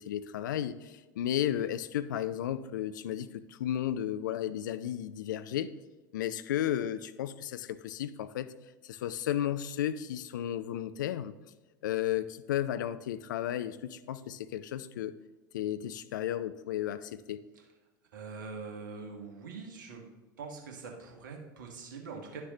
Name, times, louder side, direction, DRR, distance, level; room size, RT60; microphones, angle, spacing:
voice 1, 0.0-5.7 6.1-8.5 8.8-11.3 11.8-15.2 15.5-17.4, left 11 dB, 65° left, 14 dB, 0.4 m, -33 dB
voice 2, 18.1-20.1 20.4-22.4, right 4 dB, 65° right, 2 dB, 1.4 m, -43 dB
11.0 x 6.6 x 2.9 m, 1.2 s
figure-of-eight pair, 75°, 11 cm